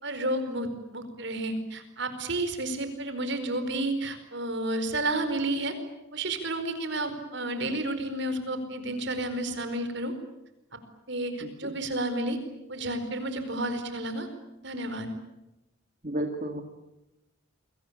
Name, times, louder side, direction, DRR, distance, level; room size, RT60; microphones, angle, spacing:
voice 1, 0.0-5.7 6.1-10.1 11.1-12.4 12.7-14.3 14.6-15.1, right 1 dB, 55° right, 9 dB, 4.8 m, -31 dB
voice 2, 11.4-11.7 16.0-16.6, right 1 dB, 35° right, 4 dB, 2.2 m, -32 dB
29.0 x 23.0 x 8.7 m, 0.93 s
head